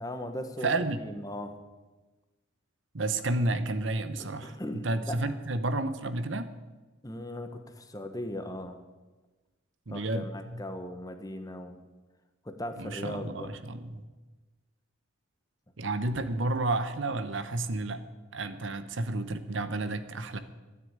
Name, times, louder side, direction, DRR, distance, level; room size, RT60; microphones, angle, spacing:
voice 1, 0.0-1.5 4.2-5.3 7.0-8.8 9.9-11.7 12.4-13.6, left 1 dB, 15° left, 7 dB, 1.1 m, -38 dB
voice 2, 0.6-1.0 2.9-4.6 4.8-6.5 9.9-10.6 12.8-14.0 15.8-18.0 18.3-20.4, right 2 dB, 65° right, 11 dB, 0.9 m, -31 dB
13.0 x 9.8 x 8.9 m, 1.2 s
head